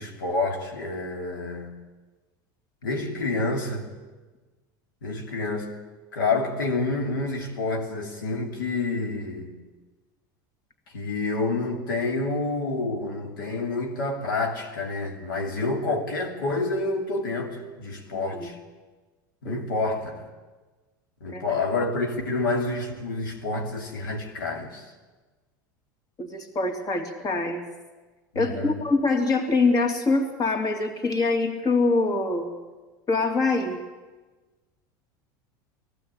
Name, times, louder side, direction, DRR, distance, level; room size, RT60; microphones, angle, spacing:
voice 1, 0.0-1.7 2.8-3.9 5.0-5.7 6.1-9.5 10.9-18.6 19.4-20.2 21.2-24.9 28.3-28.7, left 3 dB, 90° left, 1 dB, 2.9 m, -28 dB
voice 2, 18.2-18.5 19.4-19.6 21.3-21.6 26.2-27.6 28.3-32.5 33.1-33.8, left 3 dB, 35° left, 4 dB, 3.1 m, -24 dB
18.5 x 15.5 x 9.0 m, 1.3 s
hypercardioid pair, 95°, 11 cm